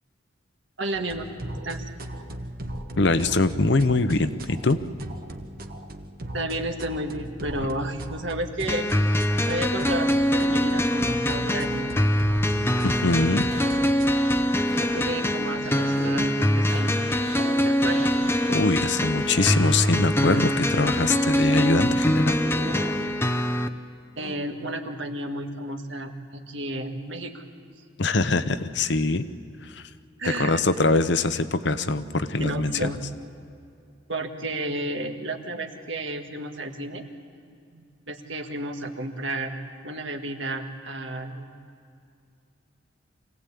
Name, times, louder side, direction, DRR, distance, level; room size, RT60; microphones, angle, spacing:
voice 1, 0.8-1.9 6.3-9.2 9.5-12.0 14.8-17.1 17.6-18.3 24.2-27.4 30.2-30.6 32.4-33.0 34.1-37.0 37.5-39.5 39.8-41.5, right 1 dB, 75° right, 5 dB, 1.8 m, -32 dB
sound 1, 0.9-14.6, right 1 dB, 50° right, 1.2 m, -38 dB
voice 2, 3.0-4.8 12.8-13.5 18.5-22.4 28.0-29.2 29.6-29.8 30.2-32.9, left 3 dB, 60° left, 11 dB, 0.8 m, -23 dB
sound 2, 8.7-23.7, equal, 10° left, 0.6 m, -23 dB
sound 3, 12.4-18.9 19.2-20.0 20.3-21.9 22.3-23.1 24.2-24.4, right 1 dB, 30° right, 1.7 m, -39 dB
25.0 x 17.5 x 8.5 m, 2.5 s
head